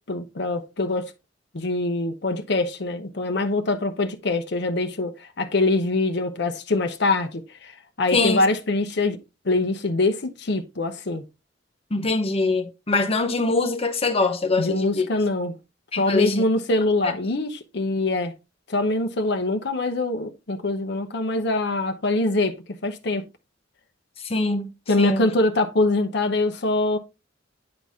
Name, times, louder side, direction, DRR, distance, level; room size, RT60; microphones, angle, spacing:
voice 1, 0.1-1.1 1.5-7.7 8.0-9.2 9.4-11.2 14.6-15.6 15.9-18.3 18.7-22.5 22.8-23.3 24.9-27.0, left 2 dB, 65° left, 0.8 m, -24 dB
voice 2, 8.1-8.4 11.9-15.1 15.9-16.4 17.0-17.1 24.2-24.7 25.0-25.3, left 3 dB, 35° left, 0.9 m, -23 dB
9.7 x 4.0 x 3.5 m
head